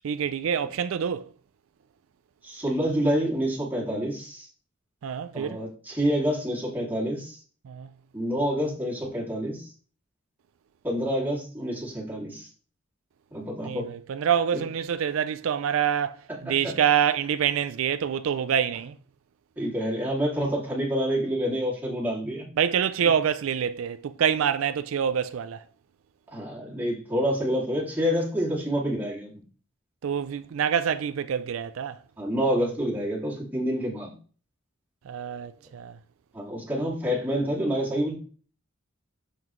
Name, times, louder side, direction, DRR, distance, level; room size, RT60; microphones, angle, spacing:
voice 1, 0.0-1.3 5.0-5.6 7.6-7.9 13.6-16.2 16.4-19.0 22.6-25.6 30.0-32.0 35.1-36.0, right 8 dB, 80° right, 0.4 m, -26 dB
voice 2, 2.4-4.5 5.3-7.4 8.1-9.7 10.8-12.5 13.3-13.9 16.4-16.7 19.6-22.4 26.3-29.3 32.2-34.1 36.3-38.1, equal, 10° right, 2.4 m, -27 dB
6.9 x 5.8 x 3.1 m
head